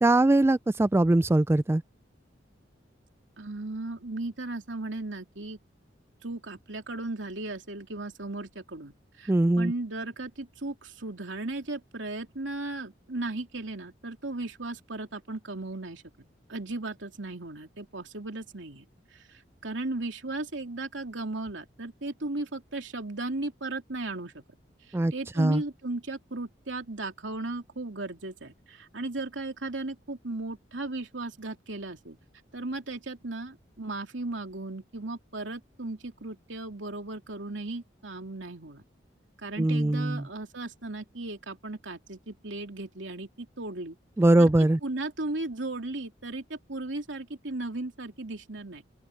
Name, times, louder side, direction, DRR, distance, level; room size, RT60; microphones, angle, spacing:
voice 1, 0.0-1.8 9.3-9.7 24.9-25.6 39.6-40.2 44.2-44.8, right 2 dB, 15° right, 0.3 m, -22 dB
voice 2, 3.4-5.6 6.2-16.0 16.5-18.9 19.1-24.4 24.9-32.2 32.5-38.8 39.4-44.0 44.4-44.5 44.8-48.8, right 2 dB, 85° right, 2.9 m, -36 dB
open air
head